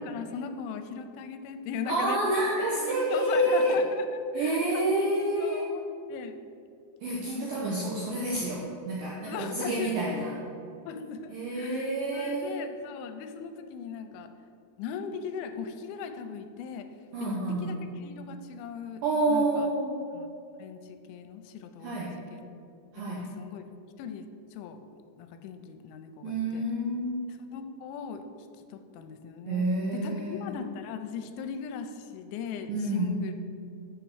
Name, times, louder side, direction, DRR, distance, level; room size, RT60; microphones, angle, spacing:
voice 1, 0.0-2.2 2.8-6.4 7.3-7.7 9.3-10.2 10.9-14.3 14.8-16.9 17.2-19.7 20.1-20.3 20.6-22.5 23.0-23.6 24.0-24.8 25.2-26.6 27.5-28.2 28.7-33.3, left 6 dB, 85° left, 8 dB, 3.0 m, -39 dB
voice 2, 1.9-3.8 4.3-5.7 7.0-10.3 11.3-12.6 17.1-17.9 19.0-20.0 21.8-22.1 22.9-23.2 26.2-27.2 29.5-30.5 32.7-33.2, right 1 dB, 80° right, -4 dB, 2.0 m, -28 dB
6.9 x 6.8 x 6.2 m, 2.5 s
omnidirectional pair, 5.4 m